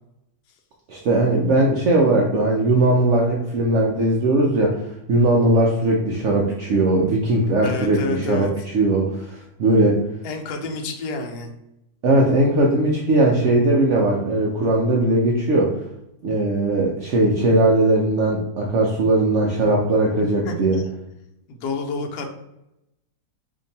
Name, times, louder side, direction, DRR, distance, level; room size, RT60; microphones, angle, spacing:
voice 1, 0.9-4.8 5.1-8.5 8.7-10.0 12.0-15.8 16.2-20.8, right 2 dB, 75° right, -1 dB, 0.7 m, -19 dB
voice 2, 7.6-8.5 10.2-11.5 20.4-20.5 21.5-22.3, left 4 dB, 80° left, 4 dB, 1.2 m, -29 dB
2.8 x 2.6 x 3.9 m, 0.87 s
omnidirectional pair, 1.8 m